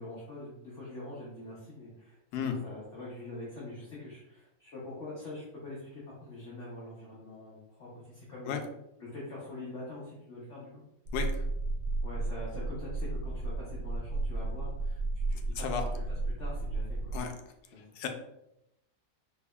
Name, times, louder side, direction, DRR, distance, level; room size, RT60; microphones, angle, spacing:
voice 1, 0.0-8.6 9.0-10.8 12.0-15.0 15.3-15.7 15.9-17.2 17.7-17.9, left 2 dB, 55° left, -7 dB, 1.1 m, -44 dB
voice 2, 11.1-11.4 15.6-15.8 17.1-17.3 18.0-18.1, left 7 dB, 80° left, 5 dB, 1.1 m, -33 dB
sound 1, 11.1-17.2, right 2 dB, 85° right, 1.2 m, -33 dB
4.5 x 2.7 x 2.2 m, 0.84 s
omnidirectional pair, 1.7 m